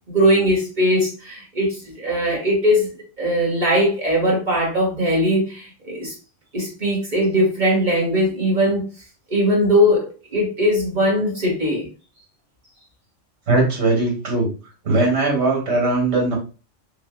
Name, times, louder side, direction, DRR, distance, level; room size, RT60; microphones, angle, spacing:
voice 1, 0.1-2.9 3.2-6.1 6.5-8.8 9.3-11.9, equal, 40° right, -3 dB, 1.9 m, -20 dB
voice 2, 13.5-14.5 14.8-16.4, right 2 dB, 60° right, -1 dB, 2.3 m, -19 dB
5.7 x 3.1 x 2.4 m, 0.33 s
omnidirectional pair, 1.3 m